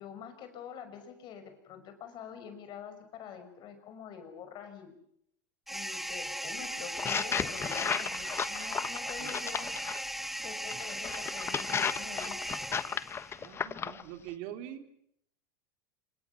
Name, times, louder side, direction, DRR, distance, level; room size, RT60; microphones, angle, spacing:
voice 1, 0.0-4.9 5.7-9.7 10.4-12.6, left 7 dB, 45° left, 8 dB, 5.6 m, -46 dB
sound 1, 5.7-13.4, right 1 dB, ahead, 1.0 m, -38 dB
sound 2, 6.9-10.0 10.7-14.0, left 7 dB, 25° left, 1.2 m, -34 dB
voice 2, 13.3-14.9, right 11 dB, 65° right, 7 dB, 3.3 m, -44 dB
26.5 x 24.0 x 7.2 m, 0.74 s
supercardioid pair, 115°, 10 cm